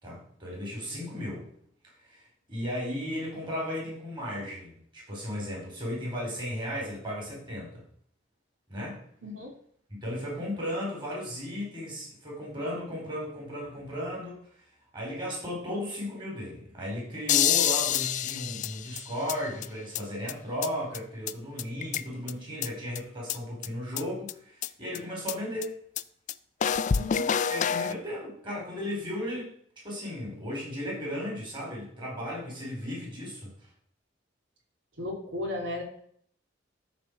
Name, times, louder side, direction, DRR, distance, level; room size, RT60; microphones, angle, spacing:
voice 1, 0.0-1.4 2.1-2.2 2.5-7.8 8.7-9.0 9.9-14.4 14.9-25.8 27.5-29.5 29.8-33.5, equal, 25° right, -4 dB, 4.5 m, -35 dB
voice 2, 9.2-9.5 26.9-27.3 35.0-35.8, left 1 dB, 70° right, 1 dB, 2.8 m, -34 dB
sound 1, 17.3-19.3 19.6-19.7 19.9-20.0 20.3-20.4 20.6-20.7 20.9-21.0 21.3-21.4 21.6-22.3 22.6-22.7 23.0-23.1 23.3-23.4 23.6-23.7 24.0-24.1 24.3-24.4 24.6-24.7 24.9-25.0 25.3-25.4 25.6-25.7 26.0-26.1 26.3-26.4 26.6-27.9, left 9 dB, 40° left, 0.4 m, -27 dB
13.0 x 4.5 x 6.5 m, 0.63 s
head